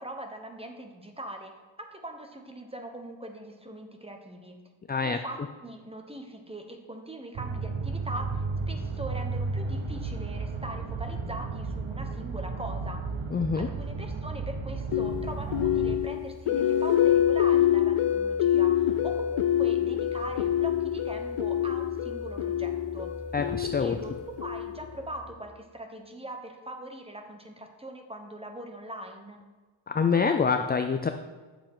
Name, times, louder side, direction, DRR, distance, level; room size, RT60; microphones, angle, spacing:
voice 1, 0.0-1.5 1.9-4.6 5.0-13.0 13.6-23.1 23.8-24.1 24.4-29.4, right 1 dB, 10° right, 4 dB, 1.1 m, -41 dB
voice 2, 4.9-5.2 13.3-13.7 23.3-24.0 29.9-31.1, left 5 dB, 20° left, 6 dB, 0.4 m, -26 dB
sound 1, 7.3-16.0, right 4 dB, 65° right, 1.1 m, -33 dB
sound 2, 11.1-25.3, right 1 dB, 80° right, 2.5 m, -46 dB
sound 3, 14.9-25.0, left 11 dB, 90° left, 0.6 m, -26 dB
9.1 x 7.1 x 3.7 m, 1.3 s
wide cardioid pair, 95°, 50 cm